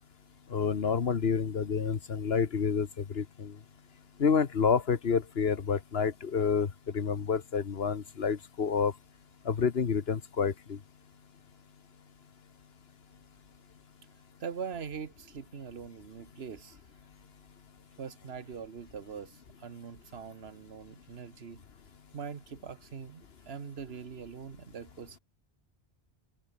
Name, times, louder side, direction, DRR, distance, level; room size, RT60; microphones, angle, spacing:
voice 1, 0.5-2.9 3.1-3.5 4.2-6.7 6.9-8.9 9.4-10.8, left 6 dB, 75° left, 1.5 m, -28 dB
voice 2, 14.4-16.8 18.0-21.6 22.1-25.2, right 6 dB, 75° right, 1.5 m, -42 dB
omnidirectional pair, 1.0 m